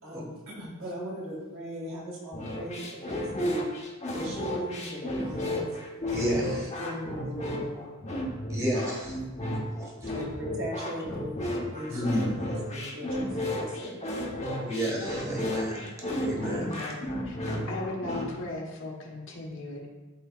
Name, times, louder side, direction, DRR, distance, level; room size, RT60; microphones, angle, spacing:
voice 1, 0.0-3.7 4.1-5.7 6.3-6.5 6.8-7.9 10.1-13.3 13.5-14.0, equal, 65° right, -3 dB, 2.2 m, -38 dB
sound 1, 2.3-18.3, left 1 dB, 30° left, 1.0 m, -33 dB
voice 2, 6.1-6.7 8.5-9.2 9.8-9.9 11.9-12.4 14.6-15.8 16.2-16.7, equal, 15° right, -3 dB, 1.6 m, -30 dB
voice 3, 16.5-19.9, left 1 dB, 60° left, -1 dB, 1.3 m, -37 dB
12.5 x 4.3 x 2.4 m, 1.2 s
head